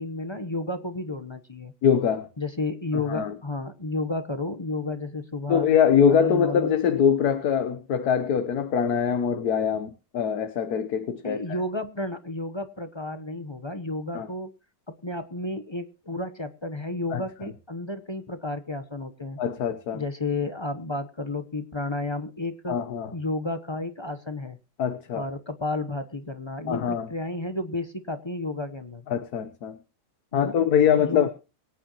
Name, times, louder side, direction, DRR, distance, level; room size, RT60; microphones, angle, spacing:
voice 1, 0.0-1.7 2.4-5.7 6.1-6.9 11.2-14.5 14.9-19.4 19.9-22.8 23.1-24.6 25.1-29.0 30.3-30.6 31.0-31.3, left 2 dB, 20° left, 0.7 m, -32 dB
voice 2, 1.8-2.3 3.1-3.4 5.5-11.6 14.1-14.3 17.1-17.5 19.4-20.0 22.7-23.1 24.8-25.3 26.7-27.1 29.1-29.8 30.3-31.3, left 7 dB, 60° left, 1.5 m, -23 dB
24.5 x 9.0 x 3.0 m
omnidirectional pair, 1.9 m